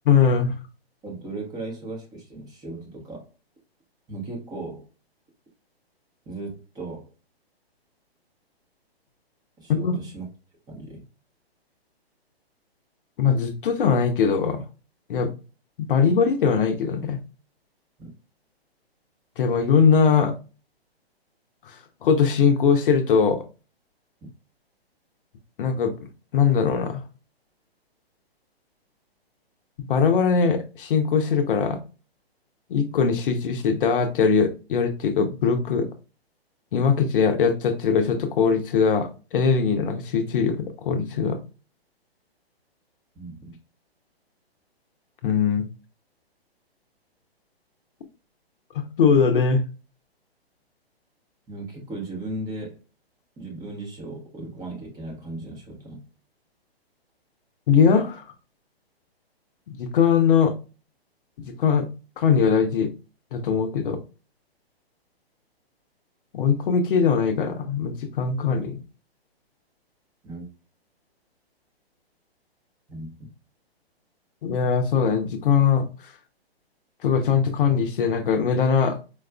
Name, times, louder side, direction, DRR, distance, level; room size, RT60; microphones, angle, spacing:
voice 1, 0.1-0.5 9.7-10.0 13.2-14.6 15.1-15.3 15.8-17.2 19.4-20.3 21.7-23.4 25.6-25.9 26.3-27.0 29.8-31.8 32.7-35.9 36.7-41.4 45.2-45.7 48.7-49.6 57.7-58.2 59.8-60.6 61.4-61.9 62.2-62.9 63.3-64.0 66.3-68.8 74.4-75.9 77.0-79.0, left 6 dB, 55° left, 0.7 m, -21 dB
voice 2, 1.0-3.3 4.1-4.9 6.3-7.1 9.6-10.3 10.7-11.0 18.0-18.1 43.1-43.6 51.5-52.8 53.4-56.0 70.2-70.5 72.9-73.3, right 2 dB, 10° right, 0.8 m, -36 dB
4.6 x 2.3 x 2.2 m
hypercardioid pair, 135°, 32 cm